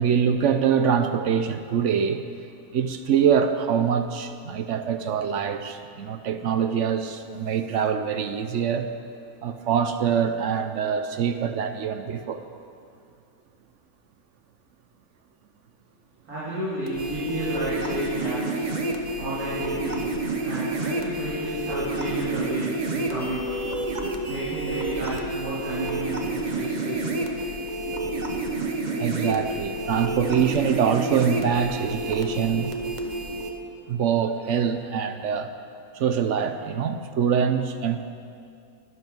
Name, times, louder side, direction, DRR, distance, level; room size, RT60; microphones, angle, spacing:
voice 1, 0.0-2.2 2.7-8.9 9.4-12.4 29.0-32.7 33.9-35.5 35.9-38.0, right 7 dB, 65° right, 8 dB, 0.8 m, -24 dB
voice 2, 16.3-18.6 19.2-20.1 20.4-23.5 24.3-27.0, right 1 dB, 90° right, -11 dB, 3.5 m, -31 dB
sound 1, 16.9-33.5, right 2 dB, 35° right, 1.0 m, -29 dB
12.0 x 11.0 x 5.3 m, 2.4 s
omnidirectional pair, 1.5 m